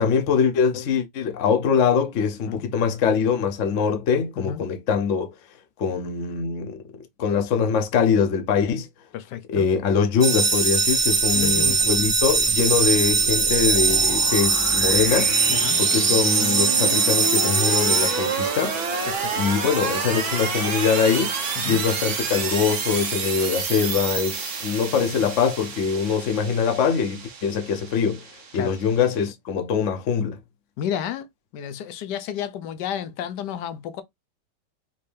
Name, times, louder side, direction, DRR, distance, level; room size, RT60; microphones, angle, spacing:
voice 1, 0.0-5.3 5.8-6.8 7.2-8.9 9.5-15.3 15.8-18.8 19.4-21.3 21.7-28.2 28.5-30.4, left 6 dB, 55° left, 0.9 m, -23 dB
voice 2, 9.1-9.7 11.3-11.9 15.5-15.8 19.1-19.3 21.6-21.8 28.5-28.8 30.8-31.3 31.5-34.0, left 9 dB, 75° left, 1.3 m, -31 dB
sound 1, 10.2-18.9, right 4 dB, 25° right, 0.7 m, -21 dB
sound 2, 10.8-29.2, right 5 dB, 60° right, 1.5 m, -29 dB
5.3 x 2.6 x 3.3 m
omnidirectional pair, 1.8 m